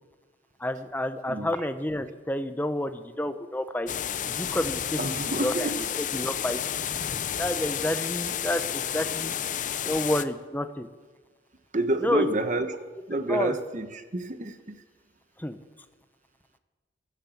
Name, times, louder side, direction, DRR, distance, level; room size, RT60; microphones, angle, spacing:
voice 1, 0.6-3.9 4.3-5.0 5.4-5.7 6.1-6.6 7.4-9.3 9.9-10.9 12.0-12.2 13.3-13.5 15.4-15.6, left 1 dB, 10° left, 10 dB, 0.8 m, -29 dB
sound 1, 3.9-10.2, left 9 dB, 45° left, 0.6 m, -31 dB
voice 2, 5.0-5.8 9.2-9.4 11.7-12.8 13.1-14.8, right 1 dB, 45° right, 9 dB, 1.2 m, -29 dB
15.0 x 13.0 x 7.3 m, 1.3 s
head